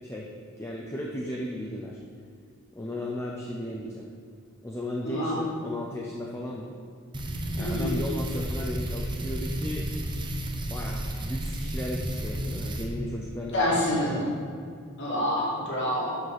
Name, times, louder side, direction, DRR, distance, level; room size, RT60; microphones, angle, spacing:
voice 1, 0.6-2.0 2.7-4.1 4.6-6.7 7.6-9.9 10.7-14.3, left 1 dB, 10° left, -2 dB, 0.6 m, -35 dB
voice 2, 5.0-5.4 7.6-7.9 13.5-14.3 15.0-16.2, left 1 dB, 55° left, -5 dB, 2.5 m, -27 dB
sound 1, 7.1-12.9, right 1 dB, 20° right, 0.8 m, -32 dB
7.3 x 6.1 x 6.5 m, 2.1 s
head